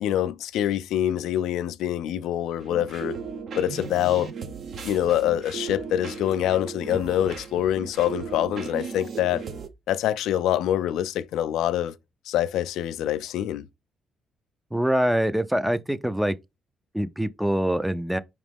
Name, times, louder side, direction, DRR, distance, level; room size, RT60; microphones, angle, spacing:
voice 1, 0.0-3.2 3.6-4.3 4.8-9.4 9.9-11.9 12.3-13.7, left 11 dB, 85° left, 0.3 m, -25 dB
sound 1, 2.6-9.7, right 6 dB, 60° right, 0.8 m, -36 dB
voice 2, 14.7-16.4 16.9-18.2, equal, 5° right, 0.4 m, -24 dB
4.9 x 3.0 x 3.4 m
cardioid pair, 90°, 0 cm